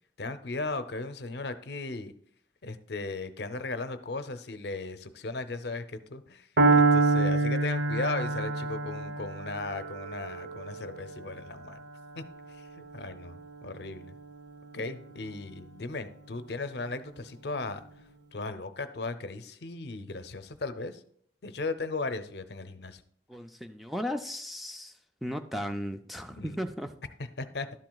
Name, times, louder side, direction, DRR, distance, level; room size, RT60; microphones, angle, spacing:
voice 1, 0.2-2.1 2.6-11.8 12.2-14.2 14.7-17.8 18.3-21.0 21.4-23.0 26.2-26.6 27.4-27.7, left 3 dB, 65° left, 11 dB, 0.7 m, -37 dB
Piano, 6.6-14.5, right 3 dB, 85° right, 1.1 m, -28 dB
voice 2, 23.3-25.0 25.2-26.9, equal, ahead, 6 dB, 0.3 m, -35 dB
12.0 x 7.5 x 2.3 m, 0.62 s
head